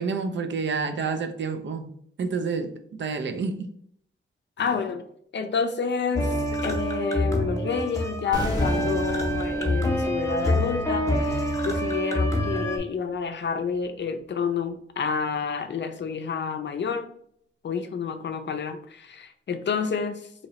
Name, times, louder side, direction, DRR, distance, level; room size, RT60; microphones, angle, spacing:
voice 1, 0.0-1.9 2.2-3.7, right 4 dB, 65° right, 0.4 m, -29 dB
voice 2, 4.6-5.0 5.3-6.3 6.6-17.1 17.6-20.2, left 5 dB, 60° left, 0.4 m, -29 dB
sound 1, 6.2-12.8, equal, 15° left, 0.7 m, -26 dB
sound 2, 8.3-13.3 13.6-13.8, equal, 20° right, 0.8 m, -37 dB
2.9 x 2.8 x 4.1 m
wide cardioid pair, 120°, 21 cm